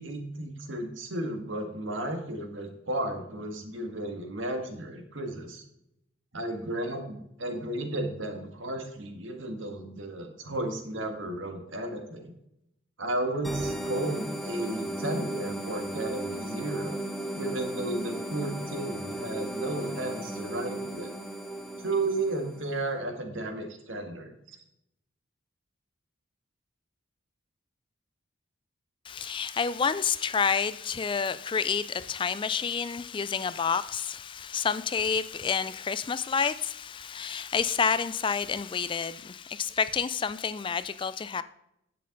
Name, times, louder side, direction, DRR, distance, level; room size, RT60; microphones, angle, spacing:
voice 1, 0.0-5.6 6.3-12.3 13.0-16.9 17.3-21.1 21.8-24.6, right 1 dB, 70° right, 1.8 m, -33 dB
sound 1, 13.4-22.8, right 1 dB, ahead, 0.9 m, -35 dB
voice 2, 29.1-41.4, left 6 dB, 25° left, 0.3 m, -29 dB
10.0 x 7.8 x 3.9 m
head